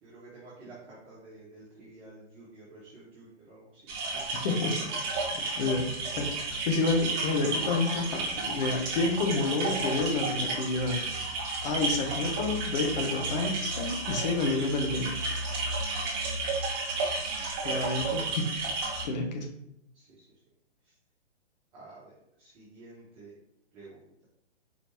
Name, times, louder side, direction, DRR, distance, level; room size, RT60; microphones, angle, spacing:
voice 1, 0.0-4.1 4.3-4.4 15.5-16.4 19.9-20.2 21.7-22.1 22.4-23.3 23.7-24.3, right 2 dB, 5° right, -14 dB, 0.4 m, -51 dB
sound 1, 3.9-19.0, right 3 dB, 20° right, 0.8 m, -32 dB
voice 2, 5.6-5.9 6.2-6.3 6.7-11.0 11.6-15.1 17.6-18.5 19.0-19.5, left 3 dB, 40° left, 4 dB, 0.8 m, -29 dB
4.7 x 2.8 x 3.5 m, 0.80 s
hypercardioid pair, 155°, 34 cm